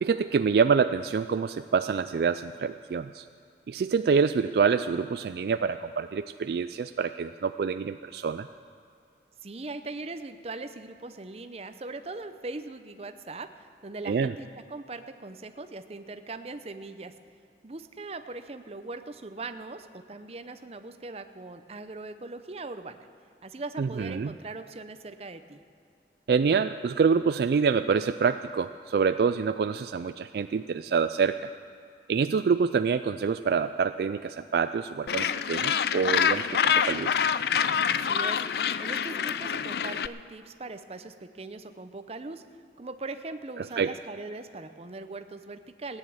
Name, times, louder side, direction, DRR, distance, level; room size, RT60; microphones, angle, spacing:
voice 1, 0.0-3.2 3.7-8.5 14.0-14.3 23.8-24.3 26.3-31.5 32.1-37.1 43.8-43.9, right 5 dB, 60° right, 11 dB, 0.3 m, -26 dB
voice 2, 9.4-17.1 17.6-23.0 23.4-25.6 37.9-42.4 42.8-46.0, right 3 dB, 35° right, 9 dB, 0.7 m, -40 dB
Gull seagull, 35.1-40.1, left 7 dB, 60° left, 0.4 m, -26 dB
16.5 x 9.9 x 7.2 m, 2.5 s
head